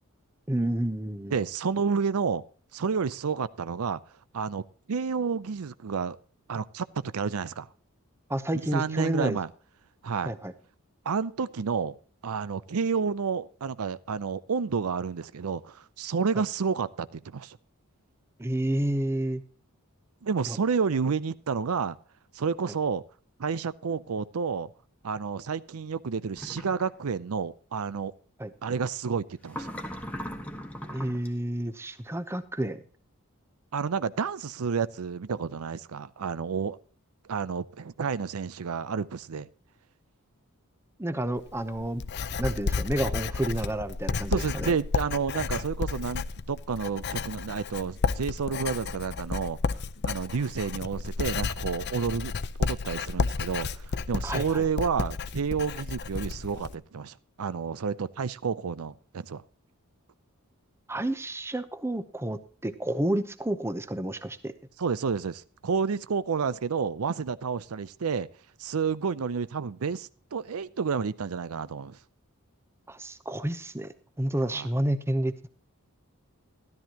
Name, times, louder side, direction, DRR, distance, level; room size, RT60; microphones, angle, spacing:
voice 1, 0.5-1.4 8.3-9.4 10.2-10.5 18.4-19.4 20.5-20.6 28.4-28.5 30.9-32.8 41.0-42.0 42.4-44.7 54.2-54.6 60.9-64.5 72.9-75.5, right 1 dB, 10° right, 0.8 m, -30 dB
voice 2, 1.3-2.4 2.7-4.0 4.3-6.2 6.5-7.7 8.7-9.5 10.0-10.3 11.1-11.9 12.2-17.6 20.2-22.0 22.3-23.0 23.4-24.7 25.0-28.1 28.6-29.7 33.7-36.8 37.3-39.5 44.3-49.6 50.0-52.3 52.6-59.4 64.8-68.3 68.6-72.0 74.5-74.7, right 5 dB, 80° right, 0.5 m, -30 dB
sound 1, 26.4-26.9 29.5-31.3, equal, 5° left, 1.3 m, -38 dB
Writing, 41.4-56.7, left 4 dB, 50° left, 0.6 m, -32 dB
13.0 x 13.0 x 2.9 m
head